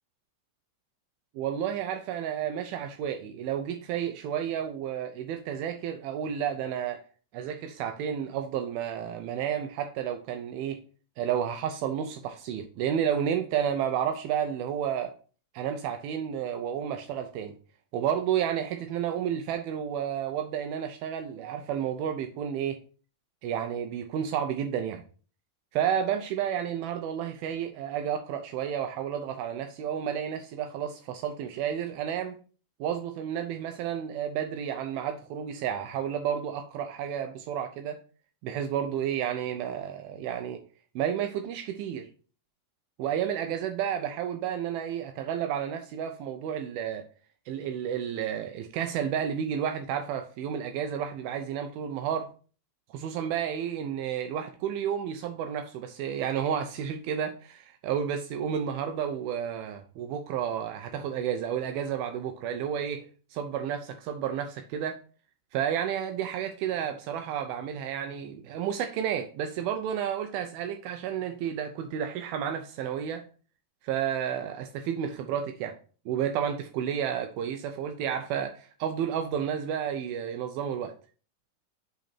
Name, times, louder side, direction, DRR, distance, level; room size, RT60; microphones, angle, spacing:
voice 1, 1.4-7.0 7.3-10.8 11.2-15.1 15.5-17.5 17.9-22.8 23.4-25.0 25.7-32.4 32.8-38.0 38.4-40.6 41.0-42.1 43.0-47.0 47.5-52.3 52.9-65.0 65.5-73.2 73.8-75.8 76.1-80.9, right 9 dB, 85° right, 2.2 m, -31 dB
8.1 x 3.9 x 4.4 m
omnidirectional pair, 4.9 m